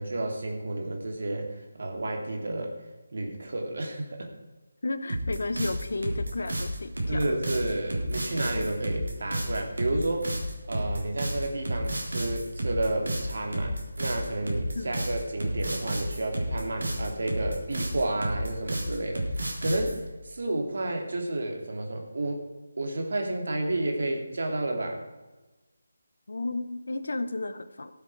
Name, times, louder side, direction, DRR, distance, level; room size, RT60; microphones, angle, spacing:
voice 1, 0.0-2.7 3.1-4.3 7.1-10.3 10.7-22.5 22.8-25.0, right 2 dB, 65° right, 2 dB, 2.7 m, -31 dB
voice 2, 4.8-7.2 14.7-15.0 26.3-27.9, left 2 dB, 70° left, 11 dB, 1.0 m, -33 dB
sound 1, 5.1-20.0, right 1 dB, 85° right, 3.4 m, -31 dB
14.5 x 7.4 x 4.8 m, 1.1 s
figure-of-eight pair, 165°, 0 cm